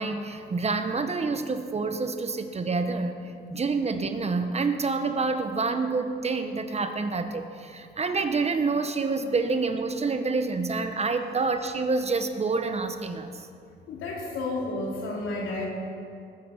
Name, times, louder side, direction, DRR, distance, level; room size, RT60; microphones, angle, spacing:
voice 1, 0.0-3.2 3.5-13.4, right 4 dB, 30° right, 7 dB, 1.2 m, -27 dB
voice 2, 13.9-15.7, left 2 dB, 85° left, -2 dB, 3.3 m, -31 dB
20.0 x 9.4 x 5.8 m, 2.5 s
cardioid pair, 90°, 20 cm